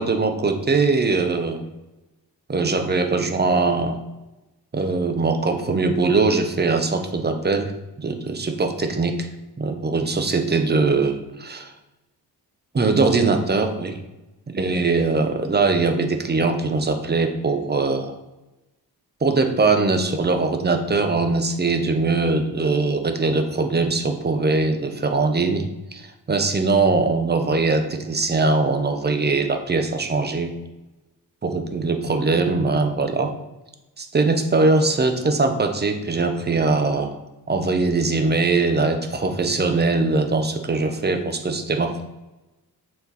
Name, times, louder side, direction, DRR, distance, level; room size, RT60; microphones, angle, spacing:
voice 1, 0.0-1.6 2.5-4.0 4.7-7.7 8.0-9.3 9.6-11.7 12.7-14.0 14.5-18.1 19.2-30.5 31.4-33.3 34.0-37.1 37.5-42.0, right 3 dB, 25° right, 6 dB, 0.8 m, -21 dB
6.7 x 4.3 x 4.2 m, 1.0 s
cardioid pair, 110°, 38 cm